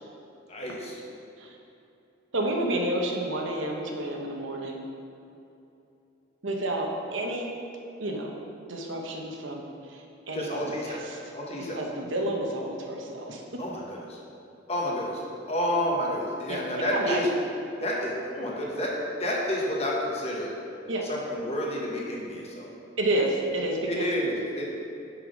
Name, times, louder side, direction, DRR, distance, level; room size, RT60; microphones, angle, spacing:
voice 1, 0.5-1.0 10.3-11.0 11.3-11.8 13.6-14.0 14.7-15.2 15.5-17.3 17.8-18.9 19.2-20.5 21.1-22.7 23.8-24.6, equal, 30° left, -3 dB, 1.1 m, -30 dB
voice 2, 2.3-4.9 6.4-7.5 8.0-8.4 8.7-9.6 9.9-11.2 11.7-13.4 16.5-17.3 20.9-21.1 23.0-24.1, right 1 dB, 70° right, 1 dB, 0.9 m, -30 dB
5.9 x 5.6 x 5.1 m, 2.8 s
head